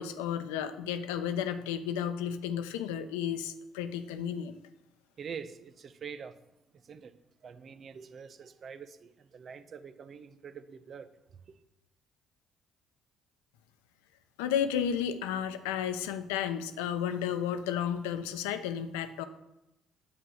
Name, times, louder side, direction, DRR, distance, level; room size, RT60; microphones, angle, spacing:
voice 1, 0.0-4.6 14.4-19.3, left 9 dB, 85° left, 0.8 m, -32 dB
voice 2, 5.2-6.4 6.7-7.2 7.4-11.6, right 6 dB, 50° right, 0.9 m, -45 dB
9.6 x 8.0 x 6.4 m
hypercardioid pair, 60°, 0 cm